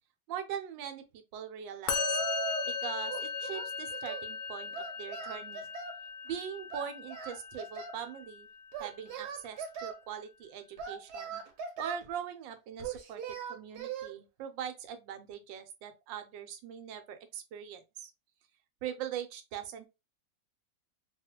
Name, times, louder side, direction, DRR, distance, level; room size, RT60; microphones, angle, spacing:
voice 1, 0.3-2.2 2.6-5.7 6.2-8.5 8.8-11.4 11.8-18.1 18.8-19.9, right 9 dB, 90° right, 1.3 m, -41 dB
Singing, 1.8-2.8 3.1-4.3 4.7-6.0 6.7-8.0 8.7-10.0 10.8-12.1 12.8-14.1, right 7 dB, 70° right, 1.2 m, -40 dB
Musical instrument, 1.9-9.2, left 6 dB, 70° left, 0.9 m, -38 dB
2.9 x 2.4 x 2.8 m
omnidirectional pair, 2.0 m